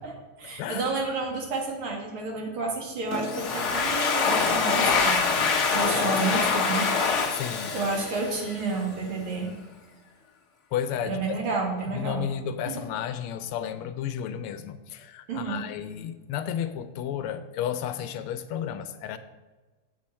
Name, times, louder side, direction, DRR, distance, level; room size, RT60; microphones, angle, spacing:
voice 1, 0.4-5.2 5.7-6.9 7.7-9.5 11.0-12.2 12.7-12.8 15.3-15.6, right 4 dB, 75° right, 0 dB, 2.5 m, -30 dB
Domestic sounds home sounds, 3.1-8.7, left 5 dB, 55° left, 0.8 m, -25 dB
voice 2, 7.3-7.7 10.7-11.4 11.9-19.2, left 9 dB, 90° left, 11 dB, 1.5 m, -32 dB
7.6 x 7.3 x 4.3 m, 1.2 s
omnidirectional pair, 2.4 m